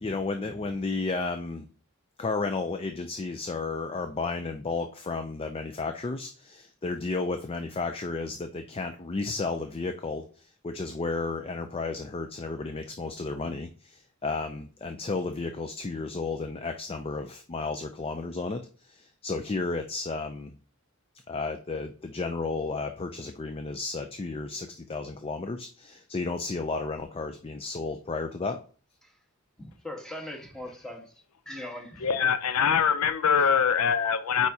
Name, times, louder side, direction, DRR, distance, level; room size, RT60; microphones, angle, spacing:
voice 1, 0.0-1.7 2.2-20.5 21.3-28.6, left 3 dB, 25° left, 0.4 m, -33 dB
voice 2, 29.6-31.1 31.4-32.1, left 1 dB, 5° left, 1.4 m, -40 dB
voice 3, 32.0-34.5, left 7 dB, 80° left, 0.5 m, -23 dB
8.7 x 4.8 x 2.8 m
head